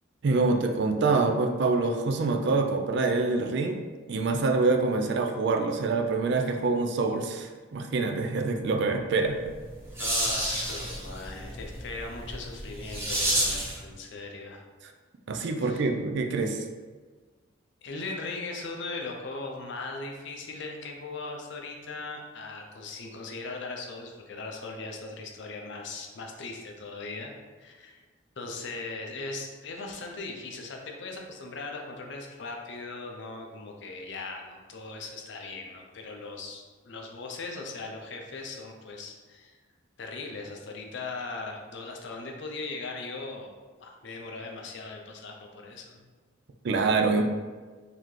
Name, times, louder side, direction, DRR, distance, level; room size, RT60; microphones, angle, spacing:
voice 1, 0.2-3.8 4.1-9.5 15.3-16.6 46.6-47.2, right 3 dB, 60° right, 5 dB, 0.4 m, -26 dB
sound 1, 9.4-13.8, right 1 dB, 10° right, 0.7 m, -30 dB
voice 2, 10.0-14.6 15.6-15.9 17.8-27.3 27.6-28.0 28.4-39.6 40.0-43.5 43.8-46.0, left 3 dB, 60° left, 2 dB, 0.6 m, -39 dB
3.9 x 2.8 x 3.1 m, 1.4 s
head